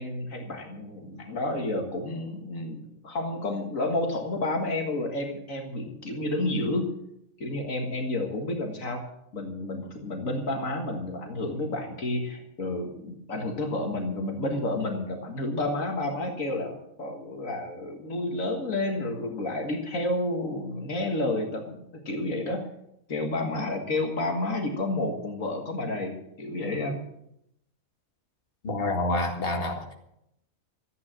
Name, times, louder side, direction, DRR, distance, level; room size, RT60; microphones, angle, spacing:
voice 1, 0.0-6.9 7.4-9.0 9.3-22.6 23.1-27.0, left 2 dB, 75° left, 3 dB, 2.1 m, -30 dB
voice 2, 28.6-29.9, left 2 dB, 45° left, 1 dB, 2.3 m, -28 dB
13.5 x 9.5 x 7.5 m, 0.79 s
omnidirectional pair, 1.4 m